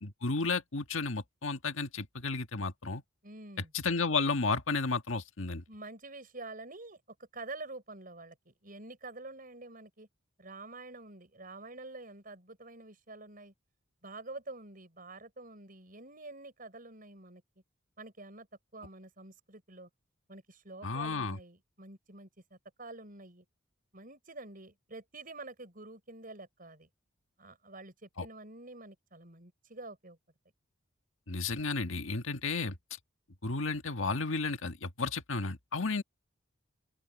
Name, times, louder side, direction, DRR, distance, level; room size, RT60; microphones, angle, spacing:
voice 1, 0.0-3.0 3.7-5.6 20.8-21.4 28.2-28.3 31.3-32.8 33.4-36.0, left 4 dB, 75° left, 1.7 m, -32 dB
voice 2, 3.2-3.7 5.7-10.1 10.4-13.5 14.0-17.4 18.0-18.5 18.7-19.9 20.3-23.5 23.9-26.9 27.4-30.2, right 2 dB, 45° right, 5.7 m, -47 dB
open air
head